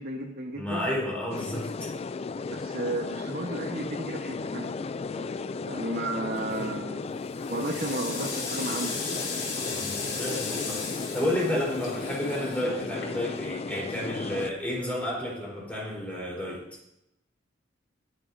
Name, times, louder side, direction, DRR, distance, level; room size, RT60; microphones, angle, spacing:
voice 1, 0.0-0.9 2.5-4.7 5.1-5.2 5.7-7.1 7.5-9.3, right 2 dB, 50° right, 0 dB, 1.3 m, -33 dB
voice 2, 0.6-1.9 9.8-16.6, left 1 dB, 5° left, -4 dB, 4.0 m, -31 dB
sound 1, 1.3-14.5, left 4 dB, 30° left, 0.3 m, -35 dB
sound 2, 6.4-6.8 7.2-13.5, left 4 dB, 70° left, 5.6 m, -36 dB
24.5 x 8.4 x 2.7 m, 0.85 s
head